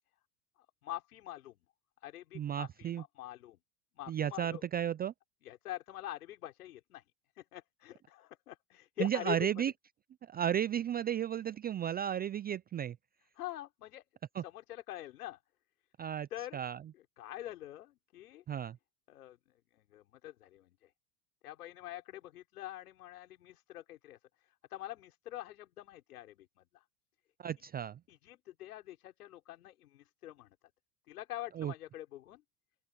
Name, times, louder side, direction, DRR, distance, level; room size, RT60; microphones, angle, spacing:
voice 1, 0.6-1.6 2.0-3.6 4.0-4.6 5.4-7.0 7.4-9.5 13.4-14.0 14.4-15.4 16.3-16.6 16.9-18.4 19.1-19.4 19.7-20.9 21.4-24.2 24.7-26.8 28.1-30.5 31.1-32.4, left 14 dB, 85° left, 5.8 m, -45 dB
voice 2, 2.3-3.0 4.1-5.1 9.0-9.7 10.3-13.0 14.4-14.5 16.0-16.3 16.5-16.8 18.5-18.8 27.4-28.0 31.6-31.7, right 9 dB, 20° right, 0.4 m, -33 dB
open air
hypercardioid pair, 95°, 44 cm